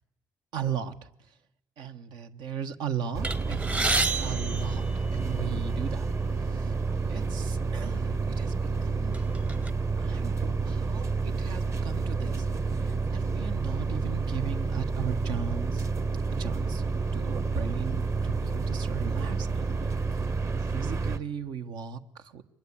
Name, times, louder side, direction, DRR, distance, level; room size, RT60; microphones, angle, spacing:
voice 1, 0.5-1.4 1.8-6.7 7.1-9.3 10.0-15.9 16.3-16.8 17.1-20.3 20.7-22.4, right 8 dB, 80° right, 8 dB, 1.3 m, -37 dB
sound 1, 3.1-21.2, right 4 dB, 40° right, 1.3 m, -29 dB
sound 2, 3.2-5.6 6.4-6.5 6.9-7.0 7.9-8.0 8.5-9.7, right 2 dB, 20° right, 0.8 m, -30 dB
24.0 x 21.5 x 8.5 m, 0.83 s
supercardioid pair, 75°, 7 cm